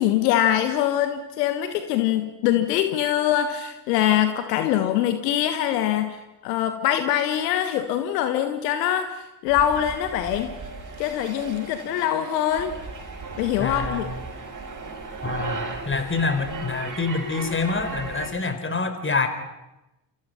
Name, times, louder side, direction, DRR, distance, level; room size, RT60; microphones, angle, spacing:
voice 1, 0.0-10.6 11.0-12.7 13.4-14.1, left 11 dB, 70° left, 9 dB, 1.6 m, -23 dB
sound 1, 9.5-18.3, right 3 dB, 35° right, 6.7 m, -36 dB
voice 2, 13.6-14.1 15.2-19.3, left 4 dB, 25° left, 9 dB, 4.5 m, -26 dB
29.5 x 28.5 x 5.7 m, 0.98 s
figure-of-eight pair, 45°, 50 cm